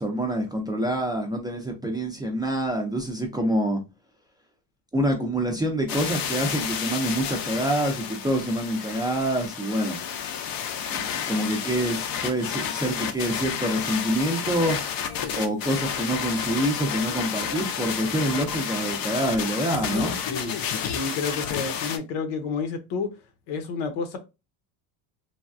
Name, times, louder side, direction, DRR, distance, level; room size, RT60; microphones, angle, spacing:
voice 1, 0.0-3.8 4.9-10.0 10.9-14.8 15.3-20.2, right 1 dB, 10° right, 0.5 m, -26 dB
sound 1, 5.9-22.0, left 8 dB, 50° left, 0.6 m, -31 dB
voice 2, 20.9-23.1 23.5-24.2, left 5 dB, 70° left, 0.9 m, -30 dB
3.3 x 2.2 x 2.5 m
supercardioid pair, 105°, 45 cm